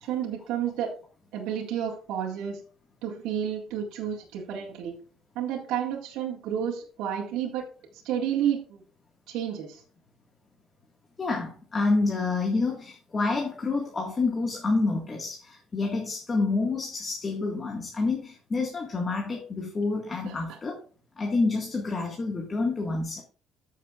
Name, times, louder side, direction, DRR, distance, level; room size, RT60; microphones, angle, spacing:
voice 1, 0.0-0.9 1.3-2.6 3.0-5.0 5.4-7.7 8.0-8.8 9.3-9.8 20.3-20.4, right 9 dB, 85° right, -2 dB, 1.9 m, -31 dB
voice 2, 11.2-20.8 21.2-23.2, left 3 dB, 25° left, 1 dB, 1.8 m, -28 dB
14.0 x 6.6 x 2.5 m, 0.40 s
cardioid pair, 135°, 0 cm